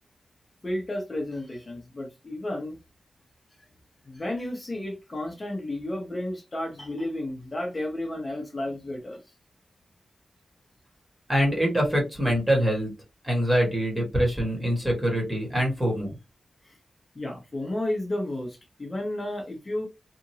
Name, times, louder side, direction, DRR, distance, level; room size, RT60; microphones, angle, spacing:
voice 1, 0.6-2.8 4.0-9.2 16.6-16.7 17.1-19.9, left 1 dB, 25° left, 0.8 m, -32 dB
voice 2, 11.3-12.9 13.2-16.1, equal, 10° right, 1.3 m, -24 dB
2.8 x 2.6 x 2.7 m
wide cardioid pair, 175°, 0 cm